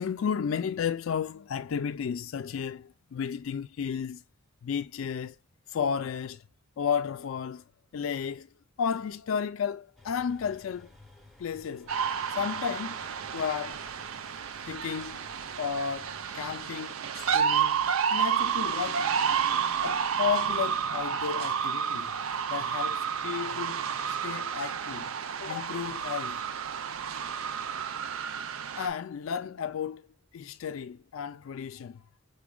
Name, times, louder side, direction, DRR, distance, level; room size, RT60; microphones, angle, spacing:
voice 1, 0.0-4.2 4.6-5.4 5.7-6.4 6.8-7.6 7.9-8.5 8.8-10.9 11.4-11.9 12.3-13.0 13.3-14.0 14.6-15.3 15.6-19.1 19.8-22.1 22.5-25.1 25.4-26.5 28.8-30.1 30.3-32.0, left 7 dB, 75° left, 0.4 m, -33 dB
sound 1, 10.0-16.7, left 2 dB, ahead, 0.7 m, -55 dB
sound 2, 11.9-28.9, right 7 dB, 85° right, 0.4 m, -30 dB
6.0 x 2.2 x 2.2 m
head